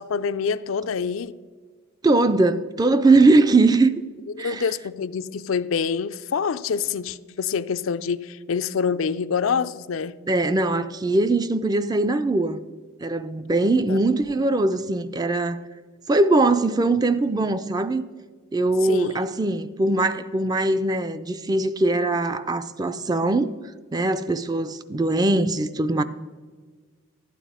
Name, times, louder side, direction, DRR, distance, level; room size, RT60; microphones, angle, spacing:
voice 1, 0.0-1.3 4.4-10.2 13.9-14.0 18.9-19.2, left 6 dB, 80° left, 0.4 m, -26 dB
voice 2, 2.0-3.9 4.4-4.6 10.3-12.6 13.0-15.7 16.1-18.0 18.5-23.5 23.9-26.0, right 2 dB, 20° right, 0.4 m, -21 dB
12.0 x 9.2 x 4.9 m
head